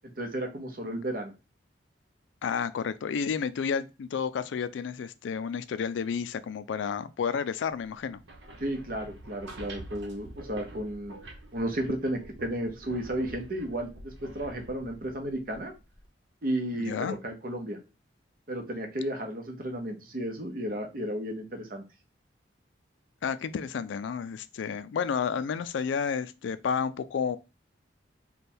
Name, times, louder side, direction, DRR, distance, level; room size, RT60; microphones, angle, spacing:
voice 1, 0.2-1.3 8.6-15.7 16.4-17.8 18.5-21.8, right 1 dB, 50° right, 0.8 m, -33 dB
voice 2, 2.4-8.2 16.7-17.2 23.2-27.4, left 6 dB, 85° left, 0.3 m, -31 dB
sound 1, 8.1-16.1, right 1 dB, 80° right, 0.9 m, -47 dB
3.4 x 2.2 x 4.2 m
head